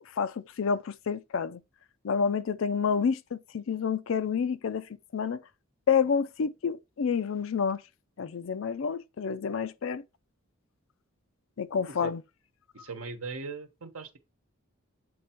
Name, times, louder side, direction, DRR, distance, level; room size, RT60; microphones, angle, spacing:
voice 1, 0.1-1.6 2.0-5.4 5.9-7.8 8.2-10.0 11.6-12.2, left 6 dB, 60° left, 0.4 m, -29 dB
voice 2, 12.7-14.2, right 4 dB, 75° right, 1.1 m, -39 dB
7.8 x 3.4 x 4.4 m
head